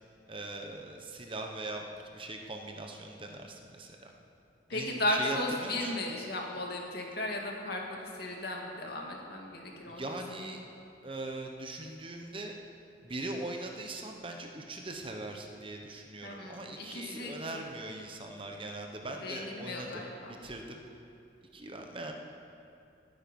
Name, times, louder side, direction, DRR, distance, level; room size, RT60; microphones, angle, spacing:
voice 1, 0.3-1.9 2.1-4.1 4.7-6.0 9.9-10.6 11.0-12.5 13.0-20.8 21.5-22.1, right 2 dB, 30° right, 3 dB, 1.0 m, -41 dB
voice 2, 4.7-10.4 16.2-17.4 19.2-20.4, left 1 dB, 55° left, 0 dB, 2.1 m, -35 dB
19.5 x 9.4 x 5.4 m, 2.7 s
head